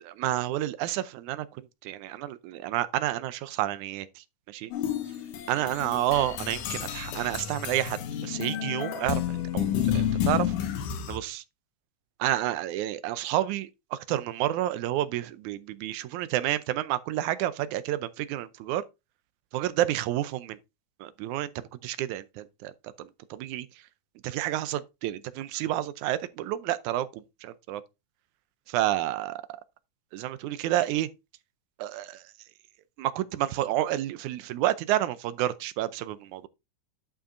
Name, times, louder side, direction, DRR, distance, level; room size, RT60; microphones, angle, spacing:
voice 1, 0.0-4.7 5.5-10.5 11.1-11.4 12.2-18.8 19.5-20.6 21.0-21.5 21.8-22.7 23.0-23.7 24.2-27.8 28.7-29.4 30.1-31.1 31.8-32.2 33.0-36.5, right 13 dB, 80° right, 1.9 m, -30 dB
sound 1, 4.7-11.2, left 9 dB, 80° left, 2.5 m, -30 dB
11.5 x 5.4 x 2.5 m
omnidirectional pair, 3.7 m